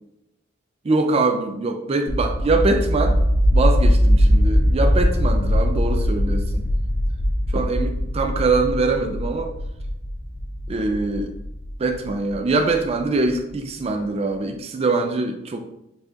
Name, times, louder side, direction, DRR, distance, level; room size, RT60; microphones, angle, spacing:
voice 1, 0.8-3.2 3.5-6.6 7.5-9.5 10.7-11.3 11.8-15.6, right 3 dB, 30° right, 4 dB, 0.4 m, -23 dB
sound 1, 2.1-12.8, equal, 80° right, 1.2 m, -21 dB
5.0 x 4.1 x 2.4 m, 0.86 s
head